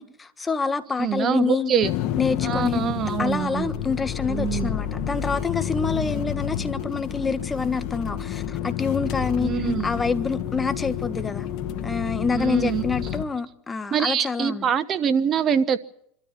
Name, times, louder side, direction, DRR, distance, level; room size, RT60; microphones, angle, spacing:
voice 1, 0.0-1.7 2.2-11.5 11.8-14.7, left 5 dB, 20° left, 1.4 m, -27 dB
voice 2, 1.0-1.9 2.4-3.7 4.3-4.8 9.4-9.9 12.3-12.8 13.9-15.8, right 8 dB, 35° right, 1.2 m, -24 dB
sound 1, 1.8-13.2, left 10 dB, 55° left, 1.6 m, -29 dB
25.5 x 13.5 x 9.8 m
hypercardioid pair, 100°, 0 cm